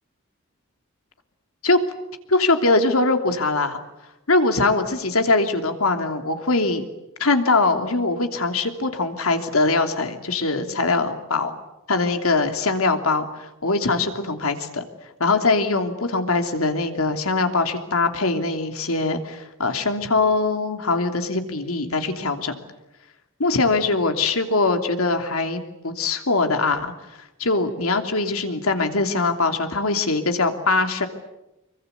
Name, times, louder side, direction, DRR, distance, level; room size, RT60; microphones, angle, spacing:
voice 1, 2.3-3.8 4.3-6.8 7.2-11.5 11.9-14.8 15.2-22.6 23.4-26.9 27.4-31.1, left 3 dB, 85° left, 6 dB, 3.1 m, -22 dB
26.0 x 23.0 x 9.6 m, 0.95 s
head